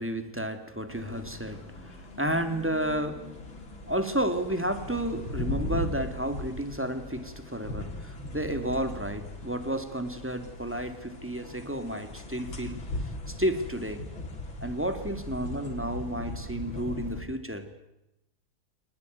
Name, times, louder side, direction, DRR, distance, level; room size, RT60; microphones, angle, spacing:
voice 1, 0.0-3.3 3.8-12.9 13.3-14.1 14.6-17.8, right 1 dB, 5° right, 8 dB, 2.2 m, -32 dB
sound 1, 0.9-17.2, left 2 dB, 70° left, 4.1 m, -39 dB
25.5 x 20.0 x 9.4 m, 0.92 s
omnidirectional pair, 2.3 m